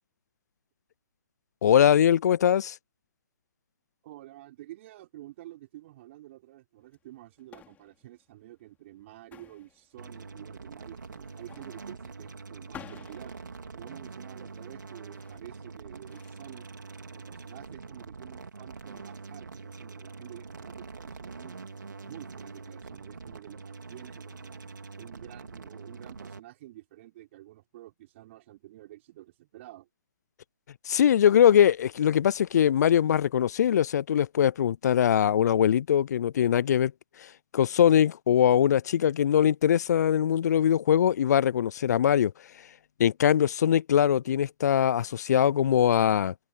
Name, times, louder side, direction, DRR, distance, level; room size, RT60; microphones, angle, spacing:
voice 1, 1.6-2.7 30.9-36.9 37.2-42.3 43.0-46.3, left 9 dB, 60° left, 0.4 m, -22 dB
voice 2, 4.0-13.4 13.7-16.7 17.1-21.6 21.9-24.6 25.0-29.9, right 15 dB, 40° right, 6.1 m, -49 dB
sound 1, 6.8-19.8, left 9 dB, 15° left, 3.6 m, -54 dB
sound 2, 10.0-26.4, right 4 dB, 80° right, 4.3 m, -44 dB
hypercardioid pair, 140°, 10 cm